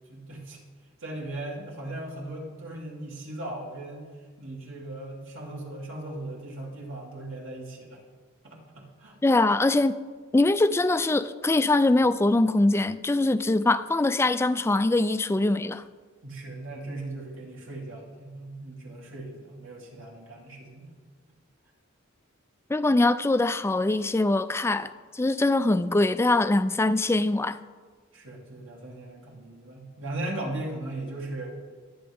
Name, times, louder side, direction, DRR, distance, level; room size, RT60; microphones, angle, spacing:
voice 1, 0.1-0.6 1.0-8.0 8.4-9.5 16.2-20.9 28.1-31.6, right 2 dB, 70° right, 2.9 m, -38 dB
voice 2, 9.2-10.0 10.3-15.8 22.7-27.6, left 2 dB, 10° left, 0.3 m, -23 dB
22.5 x 8.7 x 3.6 m
head